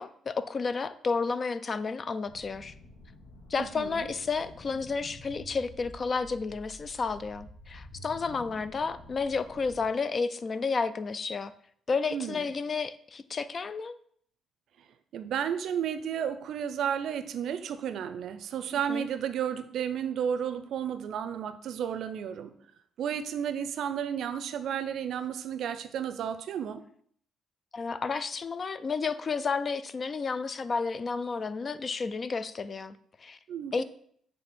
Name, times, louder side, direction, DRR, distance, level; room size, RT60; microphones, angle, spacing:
voice 1, 0.0-2.7 3.5-11.5 11.9-14.0 18.7-19.1 27.7-33.4 33.7-33.8, left 4 dB, 40° left, 14 dB, 0.4 m, -31 dB
sound 1, 2.2-9.9, left 1 dB, 85° left, 1.2 m, -49 dB
voice 2, 3.6-4.1 12.1-12.4 15.1-22.5 23.0-26.8 33.5-33.8, right 8 dB, 70° right, 10 dB, 0.5 m, -32 dB
7.8 x 3.2 x 4.2 m, 0.63 s
cardioid pair, 90°, 0 cm